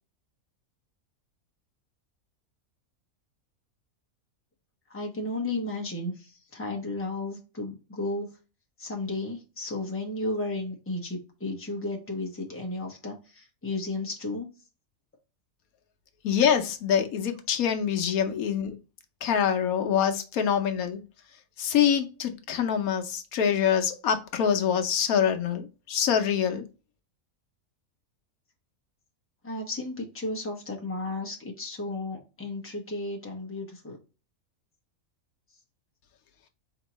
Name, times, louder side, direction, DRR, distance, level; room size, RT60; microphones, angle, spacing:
voice 1, 4.9-8.3 8.8-14.5 29.4-34.0, left 2 dB, 10° left, 1.0 m, -33 dB
voice 2, 16.2-18.8 19.2-21.0 21.6-26.7, left 8 dB, 80° left, 1.1 m, -25 dB
4.4 x 3.6 x 3.0 m
omnidirectional pair, 1.5 m